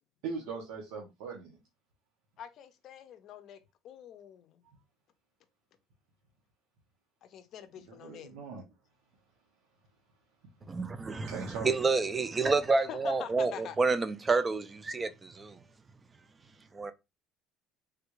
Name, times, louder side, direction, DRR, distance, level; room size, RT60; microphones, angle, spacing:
voice 1, 0.2-1.6 7.8-8.6 11.3-11.7, right 5 dB, 85° right, 0.8 m, -40 dB
voice 2, 2.4-3.6 3.8-4.6 7.3-8.3 12.9-13.8, left 9 dB, 50° left, 0.5 m, -45 dB
voice 3, 10.7-15.6 16.7-16.9, right 4 dB, 20° right, 0.4 m, -29 dB
3.3 x 2.3 x 3.0 m
cardioid pair, 125°, 0 cm